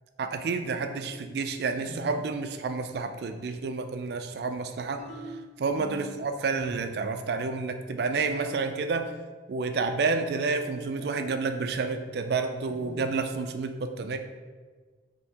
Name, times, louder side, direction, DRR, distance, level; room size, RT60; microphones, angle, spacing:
voice 1, 0.2-5.0 5.6-9.1 9.5-14.2, right 4 dB, 60° right, 7 dB, 0.3 m, -30 dB
sound 1, 0.6-1.1 1.8-2.3 5.0-6.2 6.6-7.2 8.2-8.7 11.0-11.5 12.6-13.1, right 1 dB, 40° left, 0.7 m, -43 dB
3.4 x 2.8 x 4.4 m, 1.4 s
head